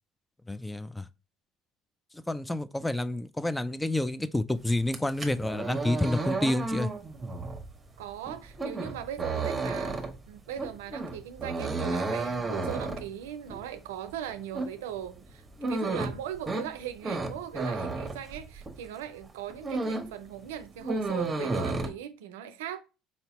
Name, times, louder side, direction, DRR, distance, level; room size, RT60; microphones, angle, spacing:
voice 1, 0.5-1.1 2.3-6.9, left 1 dB, 10° left, 0.4 m, -29 dB
sound 1, 4.8-18.9 19.2-20.2 20.5-21.9, right 3 dB, 25° right, 0.9 m, -33 dB
voice 2, 8.0-22.8, right 10 dB, 85° right, 0.4 m, -39 dB
4.2 x 2.8 x 2.9 m
hypercardioid pair, 75°, 0 cm